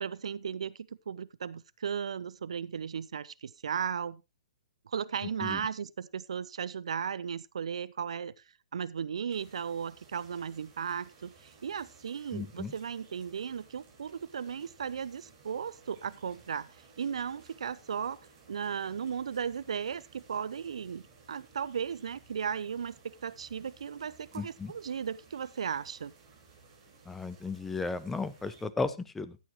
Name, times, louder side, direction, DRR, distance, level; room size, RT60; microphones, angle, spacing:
voice 1, 0.0-0.8 1.1-4.2 4.9-8.3 8.7-16.7 17.0-18.2 18.5-21.0 21.3-22.9 23.2-26.1, right 7 dB, 60° right, 0.5 m, -36 dB
sound 1, 9.3-28.6, right 4 dB, 30° right, 4.7 m, -58 dB
voice 2, 12.3-12.7 24.3-24.7 27.1-29.4, left 4 dB, 5° left, 0.7 m, -35 dB
14.5 x 8.5 x 3.0 m
figure-of-eight pair, 125°, 4 cm